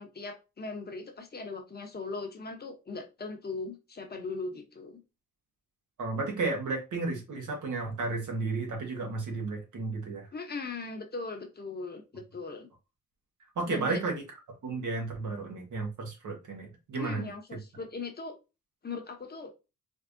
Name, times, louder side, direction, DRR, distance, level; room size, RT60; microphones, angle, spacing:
voice 1, 0.0-5.0 10.3-12.7 13.7-14.0 16.9-18.3 18.8-19.5, left 3 dB, 30° left, 4 dB, 0.8 m, -39 dB
voice 2, 6.0-10.3 13.5-14.2 14.6-17.3, right 3 dB, 75° right, 2 dB, 1.7 m, -33 dB
4.5 x 3.2 x 2.6 m, 0.27 s
wide cardioid pair, 145°, 30 cm